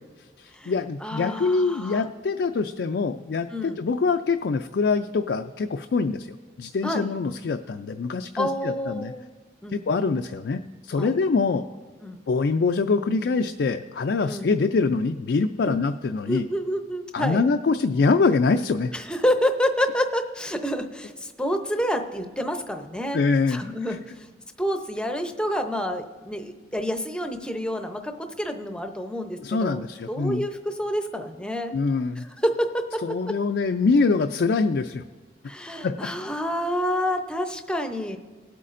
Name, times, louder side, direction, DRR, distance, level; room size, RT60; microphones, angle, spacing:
voice 1, 0.4-6.3 6.6-9.1 9.7-11.6 12.3-16.4 17.1-18.9 23.1-23.6 23.9-24.0 29.4-30.5 31.7-32.2 33.0-35.0 35.8-36.1, left 4 dB, 70° left, 6 dB, 0.4 m, -24 dB
voice 2, 1.0-2.1 3.5-3.8 6.8-7.2 8.4-9.2 9.6-10.0 11.0-11.1 12.0-12.2 14.2-14.5 15.6-15.8 16.3-17.4 18.9-23.2 23.5-24.3 24.6-29.8 30.1-31.7 32.2-33.3 35.5-38.2, equal, 5° left, 6 dB, 0.7 m, -28 dB
20.5 x 8.3 x 2.6 m, 1.3 s
head